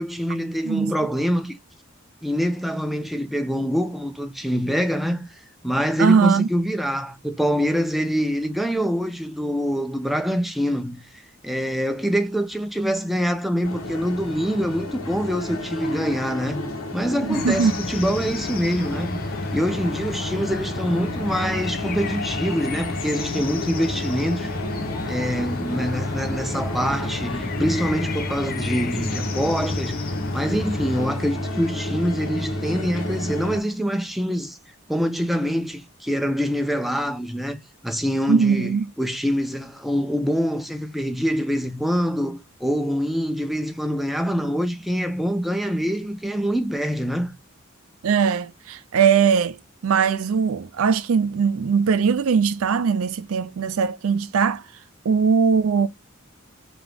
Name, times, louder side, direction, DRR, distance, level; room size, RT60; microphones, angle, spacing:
voice 1, 0.0-1.6 2.2-5.2 5.6-16.6 16.9-19.2 19.5-24.6 25.1-30.0 30.3-34.6 34.9-47.3, equal, ahead, 0.5 m, -25 dB
voice 2, 6.0-6.5 17.2-17.7 38.3-38.9 48.0-49.6 49.8-54.6 55.1-55.9, right 6 dB, 80° right, 0.4 m, -20 dB
sound 1, 13.6-33.6, left 1 dB, 80° left, 1.3 m, -31 dB
sound 2, 17.3-31.1, left 3 dB, 45° left, 0.7 m, -33 dB
3.7 x 2.9 x 3.4 m
head